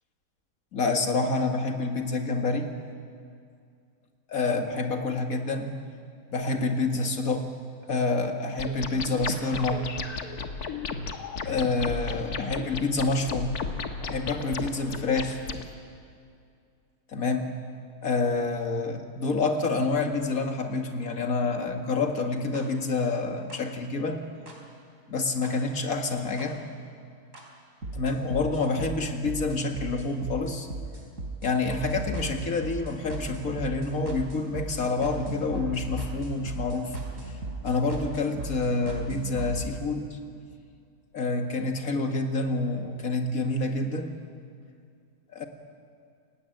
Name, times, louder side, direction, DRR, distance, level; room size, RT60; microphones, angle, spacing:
voice 1, 0.7-2.7 4.3-5.7 6.3-7.5 7.9-9.9 11.4-13.6 14.0-15.4 17.1-17.6 18.0-24.2 25.1-26.6 27.9-30.7 31.4-37.0 37.2-37.4 37.6-40.2 41.1-44.1 45.3-45.4, left 3 dB, 65° left, 4 dB, 2.4 m, -28 dB
sound 1, 8.6-15.6, left 4 dB, 85° left, 2.0 m, -34 dB
sound 2, 22.5-22.6 23.5-23.6 24.5-24.6 25.4-25.5 26.4-26.5 27.3-27.4 27.8-39.6, right 2 dB, 60° right, 4.4 m, -37 dB
29.0 x 17.0 x 9.2 m, 2.4 s
omnidirectional pair, 1.6 m